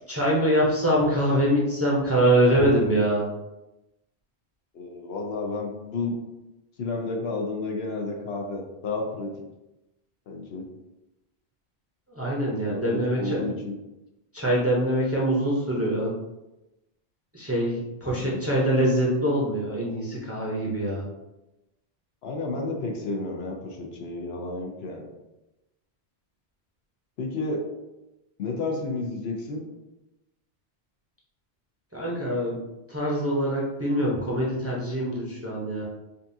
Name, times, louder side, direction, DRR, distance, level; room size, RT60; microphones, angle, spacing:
voice 1, 0.1-3.2 12.1-13.5 14.3-16.1 17.3-21.1 31.9-32.6 32.9-35.8, right 1 dB, 15° right, -5 dB, 0.7 m, -24 dB
voice 2, 4.7-6.2 6.8-9.3 10.3-10.7 12.7-13.7 18.1-18.4 22.2-25.1 27.2-27.6 28.4-29.6, left 3 dB, 70° left, 1 dB, 0.9 m, -31 dB
5.2 x 2.4 x 2.7 m, 0.98 s
omnidirectional pair, 1.1 m